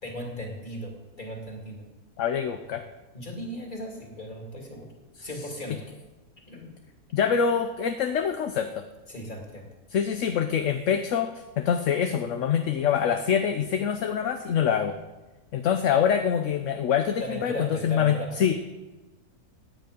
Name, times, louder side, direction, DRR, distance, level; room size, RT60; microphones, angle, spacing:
voice 1, 0.0-1.8 3.1-4.9 5.2-5.9 6.5-6.7 9.1-9.7 17.2-18.5, equal, 30° left, 0 dB, 2.8 m, -37 dB
voice 2, 2.2-2.8 5.2-5.3 7.1-8.8 9.9-15.0 15.5-18.5, left 8 dB, 60° left, 7 dB, 0.9 m, -25 dB
16.5 x 9.4 x 5.1 m, 1.2 s
omnidirectional pair, 1.7 m